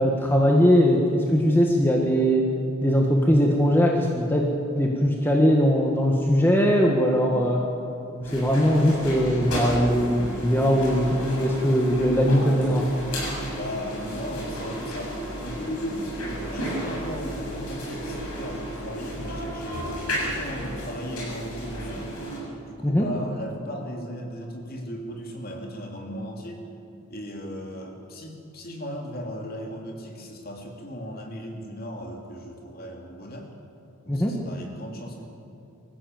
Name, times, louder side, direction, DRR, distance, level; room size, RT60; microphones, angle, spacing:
voice 1, 0.0-2.5 2.8-7.7 8.3-12.9 22.8-23.1 34.1-34.4, equal, 10° left, 0 dB, 1.6 m, -20 dB
sound 1, 8.2-22.4, equal, 85° left, 7.4 m, -33 dB
voice 2, 13.5-15.2 15.4-19.9 20.2-22.1 22.6-26.7 27.1-33.5 34.0-35.2, equal, 45° left, 1 dB, 3.1 m, -36 dB
25.0 x 15.5 x 7.8 m, 2.7 s
head